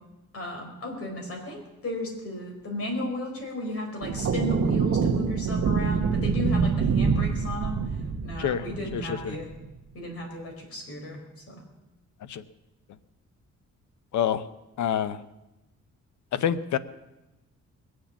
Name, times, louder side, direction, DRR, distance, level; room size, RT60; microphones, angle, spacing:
voice 1, 0.3-7.8 8.2-9.5 9.9-11.2 11.5-11.6, left 1 dB, 50° left, 1 dB, 4.4 m, -34 dB
sound 1, 4.0-9.6, right 5 dB, 55° right, 1.2 m, -26 dB
voice 2, 8.9-9.4 12.3-12.4 14.1-14.4 14.8-15.2 16.3-16.8, left 9 dB, 80° left, 14 dB, 0.8 m, -27 dB
21.0 x 7.8 x 7.1 m, 0.97 s
cardioid pair, 135°, 29 cm